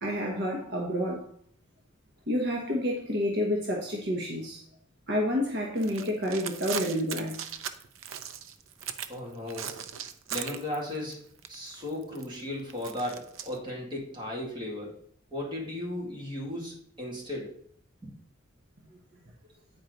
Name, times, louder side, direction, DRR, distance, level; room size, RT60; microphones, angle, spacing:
voice 1, 0.0-1.2 2.3-4.6 5.1-7.5, equal, 55° right, -1 dB, 1.1 m, -29 dB
sound 1, 5.8-9.2 9.5-11.1 11.4-13.6, right 9 dB, 90° right, 0.6 m, -38 dB
voice 2, 9.1-9.8 10.3-11.2 11.5-14.9 15.3-17.5 18.0-18.1, left 1 dB, 25° right, -3 dB, 2.2 m, -36 dB
8.8 x 4.5 x 3.9 m, 0.63 s
head